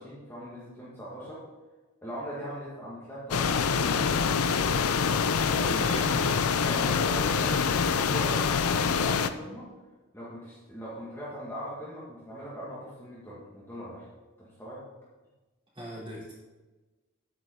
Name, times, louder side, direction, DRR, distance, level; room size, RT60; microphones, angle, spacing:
voice 1, 0.0-1.4 2.0-4.6 5.5-6.0 6.6-9.7 10.1-14.1 14.4-14.8, equal, 10° left, -7 dB, 1.9 m, -40 dB
sound 1, 3.3-9.3, left 6 dB, 90° left, 0.6 m, -25 dB
voice 2, 5.8-6.2 15.7-16.3, equal, 25° right, -5 dB, 3.6 m, -38 dB
9.8 x 9.1 x 3.9 m, 1.2 s
head